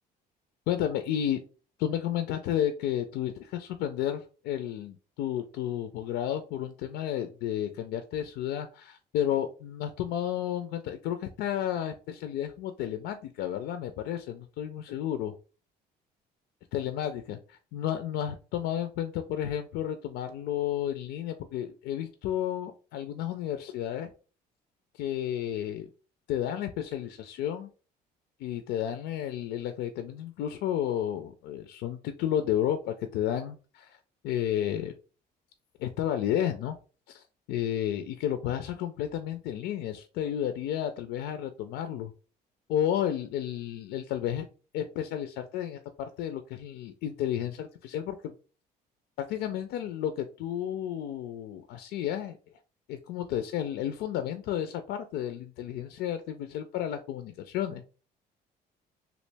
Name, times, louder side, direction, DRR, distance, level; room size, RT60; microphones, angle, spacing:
voice 1, 0.7-1.4 1.8-15.3 16.7-24.1 24.9-25.9 26.3-27.7 28.4-34.0 34.2-34.9 35.8-36.7 37.1-42.1 42.7-44.5 44.7-48.3 49.3-52.4 52.9-57.8, left 10 dB, 85° left, 8 dB, 0.4 m, -32 dB
3.0 x 2.5 x 3.3 m, 0.36 s
cardioid pair, 110°, 17 cm